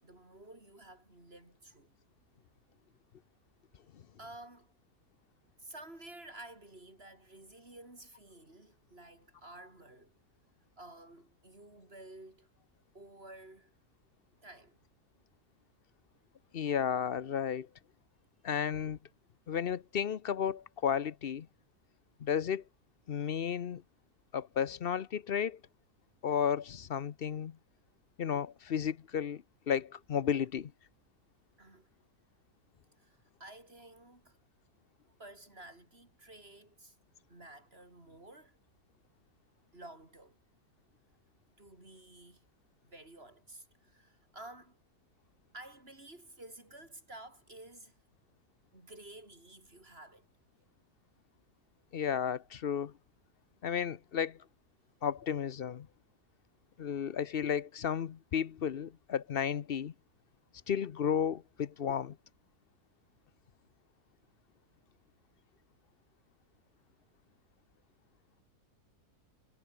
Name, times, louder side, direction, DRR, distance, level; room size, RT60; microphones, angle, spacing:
voice 1, 0.0-1.9 4.2-4.7 5.6-10.1 10.8-12.5 12.9-13.7 14.4-14.8 31.6-31.9 33.0-34.4 35.2-37.0 37.3-38.6 39.7-40.4 41.6-42.4 42.8-44.8 45.5-48.0 48.7-50.3, right 2 dB, 40° right, 5.9 m, -52 dB
voice 2, 16.5-17.7 18.4-19.0 19.5-21.5 22.2-22.6 23.1-23.8 24.3-25.6 26.2-27.6 28.2-30.7 51.9-52.9 53.6-54.4 55.0-55.9 56.8-59.9 60.7-62.2, left 8 dB, 50° left, 0.7 m, -33 dB
omnidirectional pair, 1.7 m